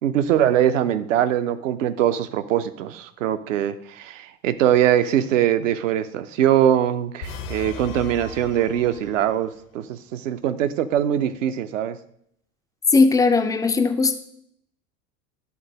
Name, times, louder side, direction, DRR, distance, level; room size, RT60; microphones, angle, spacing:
voice 1, 0.0-12.0, right 10 dB, 60° right, 11 dB, 0.8 m, -22 dB
sound 1, 7.2-9.5, left 5 dB, 70° left, 0.9 m, -36 dB
voice 2, 12.9-14.1, left 3 dB, 10° left, 7 dB, 0.4 m, -18 dB
11.0 x 3.9 x 5.1 m, 0.69 s
figure-of-eight pair, 75°, 44 cm